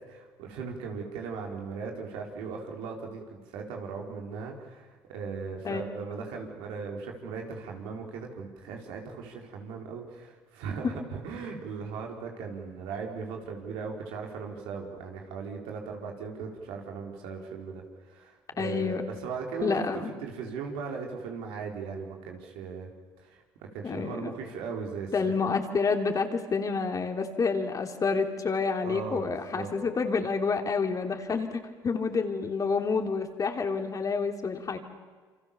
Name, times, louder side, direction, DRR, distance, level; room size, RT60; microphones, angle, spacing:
voice 1, 0.1-19.8 20.2-22.9 23.2-25.1 28.8-29.7, right 5 dB, 85° right, 1 dB, 4.6 m, -38 dB
voice 2, 18.6-19.0 19.6-20.1 23.8-24.3 25.1-34.8, left 5 dB, 40° left, 5 dB, 3.3 m, -28 dB
28.0 x 25.5 x 7.1 m, 1.5 s
supercardioid pair, 75°, 9 cm